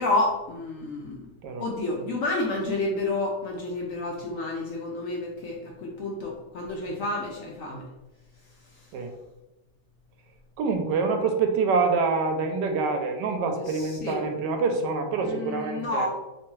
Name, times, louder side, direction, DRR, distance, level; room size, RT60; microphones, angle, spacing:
voice 1, 0.0-1.3 1.6-7.8 13.7-14.2 15.2-16.1, left 2 dB, 70° left, -2 dB, 0.8 m, -30 dB
voice 2, 10.6-16.1, right 4 dB, 85° right, 5 dB, 1.2 m, -26 dB
3.4 x 3.1 x 3.1 m, 1.0 s
omnidirectional pair, 1.9 m